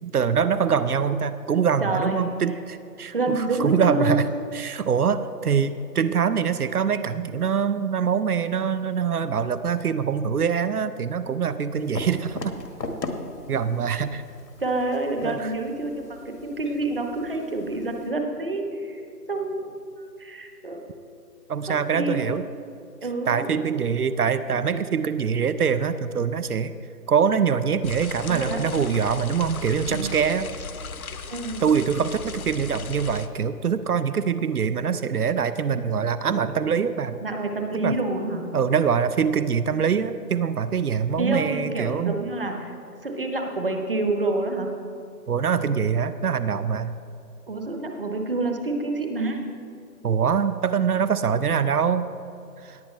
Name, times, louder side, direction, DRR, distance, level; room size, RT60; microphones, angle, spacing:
voice 1, 0.0-4.2 4.5-12.6 13.5-14.2 15.2-15.5 21.5-22.4 23.3-26.7 27.1-30.5 31.6-37.2 37.8-37.9 38.5-42.2 45.3-46.9 50.0-52.1 52.6-52.8, right 7 dB, 65° right, 13 dB, 0.6 m, -24 dB
voice 2, 1.8-2.2 3.1-4.2 14.6-19.0 19.3-20.8 21.7-22.3 23.0-23.7 28.3-28.6 29.9-30.1 31.3-31.6 37.2-38.5 41.2-42.7 43.0-44.7 47.5-49.4, right 2 dB, 35° right, 4 dB, 1.0 m, -28 dB
sound 1, 11.7-18.1, left 2 dB, 90° left, 1.6 m, -39 dB
sound 2, 27.8-33.3, left 4 dB, 60° left, 0.8 m, -36 dB
18.0 x 8.8 x 3.2 m, 2.6 s
hypercardioid pair, 175°, 48 cm